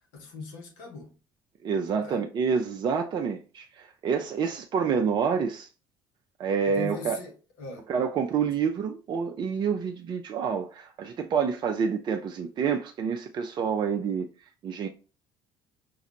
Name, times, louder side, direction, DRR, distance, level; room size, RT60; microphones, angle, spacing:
voice 1, 0.1-1.1 2.0-2.2 6.7-7.9, left 3 dB, 60° left, 1.1 m, -40 dB
voice 2, 1.6-5.7 6.4-7.2 7.9-14.3 14.6-14.9, right 6 dB, 40° right, 0.5 m, -28 dB
5.2 x 2.4 x 2.9 m
figure-of-eight pair, 55°, 12 cm